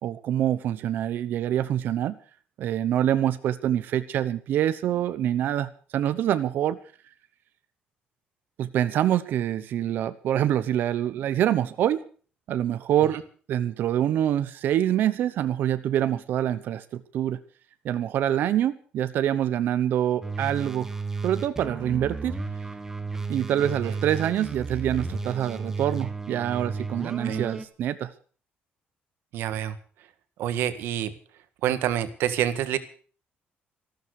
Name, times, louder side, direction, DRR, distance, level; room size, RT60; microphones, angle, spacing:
voice 1, 0.0-2.2 2.6-6.8 8.6-12.0 12.5-13.2 13.5-17.4 17.8-20.9 21.2-22.4 23.3-28.1, right 11 dB, 60° right, 12 dB, 0.9 m, -25 dB
sound 1, 20.2-27.7, right 4 dB, 10° right, 1.2 m, -33 dB
voice 2, 29.3-29.8 30.4-31.1 31.6-32.8, right 11 dB, 80° right, 11 dB, 1.6 m, -27 dB
14.0 x 13.0 x 6.5 m, 0.42 s
cardioid pair, 165°, 4 cm